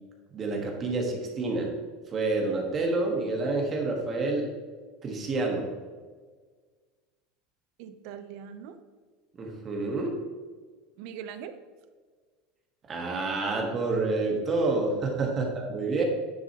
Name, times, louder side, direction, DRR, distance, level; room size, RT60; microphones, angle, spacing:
voice 1, 0.3-1.7 2.1-4.5 5.0-5.7 9.4-10.2 12.9-16.0, right 3 dB, 25° right, 1 dB, 1.4 m, -28 dB
voice 2, 7.8-8.8 11.0-11.6 15.2-15.3, right 8 dB, 55° right, 10 dB, 0.7 m, -41 dB
9.5 x 7.7 x 3.0 m, 1.5 s
supercardioid pair, 165°, 0 cm